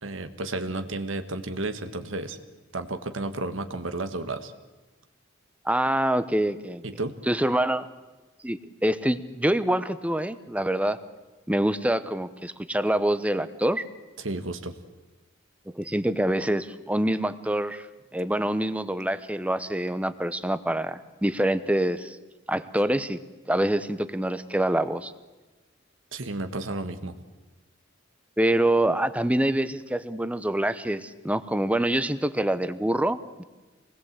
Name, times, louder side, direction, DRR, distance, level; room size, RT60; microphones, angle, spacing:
voice 1, 0.0-2.4 2.7-4.5 6.8-7.2 14.2-14.8 26.1-27.1, right 2 dB, 80° right, 8 dB, 1.6 m, -32 dB
voice 2, 5.6-6.8 7.3-7.9 8.4-11.0 11.5-13.8 15.7-17.8 18.1-22.2 22.5-23.2 23.5-25.1 28.4-33.4, right 1 dB, 5° right, 13 dB, 0.9 m, -25 dB
26.5 x 20.0 x 8.1 m, 1.2 s
head